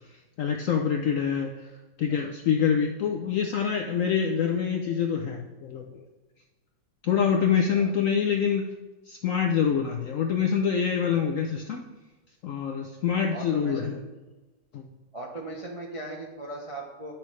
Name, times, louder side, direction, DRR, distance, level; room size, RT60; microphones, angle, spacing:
voice 1, 0.4-1.7 2.0-6.0 7.0-8.7 9.1-11.8 12.4-14.0 14.7-14.8, left 7 dB, 75° left, 3 dB, 0.7 m, -26 dB
voice 2, 7.6-8.0 13.3-14.1 15.1-17.1, right 2 dB, 40° right, -2 dB, 0.4 m, -38 dB
8.9 x 5.9 x 3.1 m, 1.2 s
omnidirectional pair, 1.9 m